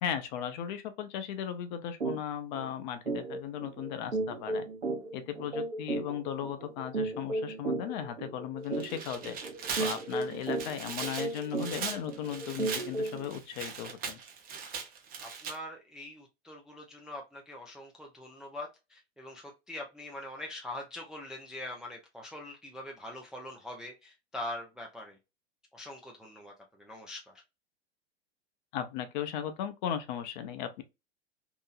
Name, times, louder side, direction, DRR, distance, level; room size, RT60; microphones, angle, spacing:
voice 1, 0.0-4.6 5.1-9.4 9.8-14.2 28.7-30.8, left 9 dB, 40° left, 0.6 m, -36 dB
sound 1, 2.0-2.2 2.5-2.7 3.1-13.3, right 2 dB, 85° right, 0.9 m, -35 dB
Tearing, 8.7-15.5, right 6 dB, 25° right, 0.7 m, -39 dB
voice 2, 15.2-25.2 25.7-27.4, left 1 dB, ahead, 0.4 m, -43 dB
2.8 x 2.7 x 2.4 m
figure-of-eight pair, 95°, 34 cm